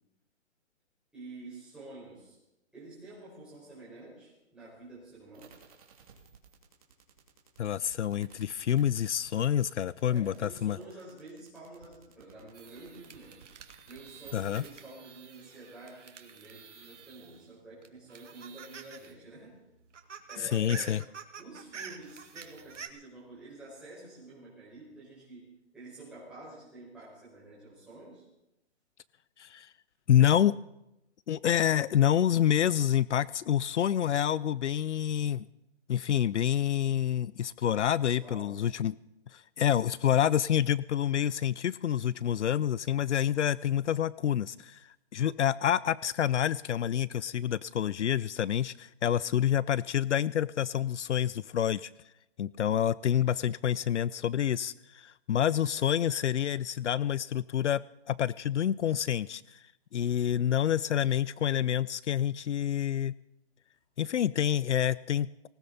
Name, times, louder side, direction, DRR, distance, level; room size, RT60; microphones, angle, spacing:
voice 1, 1.1-2.4 2.7-5.6 10.1-13.4 13.9-19.6 20.3-21.0 21.4-28.2 38.0-38.6 60.2-60.7, right 2 dB, 5° right, -8 dB, 5.0 m, -49 dB
sound 1, 5.3-14.7, right 7 dB, 30° right, 2.4 m, -55 dB
voice 2, 7.6-10.8 14.3-14.6 20.4-21.0 29.4-29.7 30.1-30.6 31.3-35.5 35.9-38.9 39.3-51.9 52.4-59.6 59.9-63.1 64.0-65.5, left 10 dB, 75° left, 20 dB, 0.5 m, -28 dB
sound 2, 12.5-17.5 17.8-19.1 19.4-19.5 19.8-22.9, right 6 dB, 85° right, 2.1 m, -48 dB
19.0 x 18.5 x 4.1 m, 0.89 s
hypercardioid pair, 175°, 36 cm